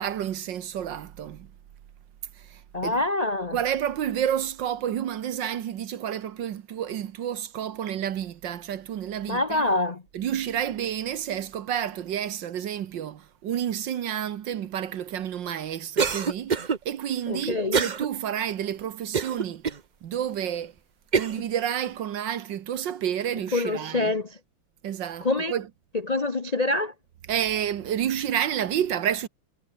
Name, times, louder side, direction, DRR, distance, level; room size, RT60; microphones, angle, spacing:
voice 1, 0.0-1.5 2.4-3.0 3.5-9.7 10.1-19.6 20.0-20.7 21.1-24.1 24.8-25.7 27.3-29.3, right 10 dB, 60° right, 1.6 m, -30 dB
voice 2, 2.7-3.6 9.3-10.0 17.3-17.9 23.5-24.4 25.2-25.5 26.0-26.9, left 2 dB, 65° left, 0.4 m, -26 dB
Cough, 16.0-16.8 17.7-18.1 18.5-18.6 19.1-19.8 20.4-20.5 21.1-21.4, right 5 dB, 75° right, 0.4 m, -25 dB
omnidirectional pair, 2.4 m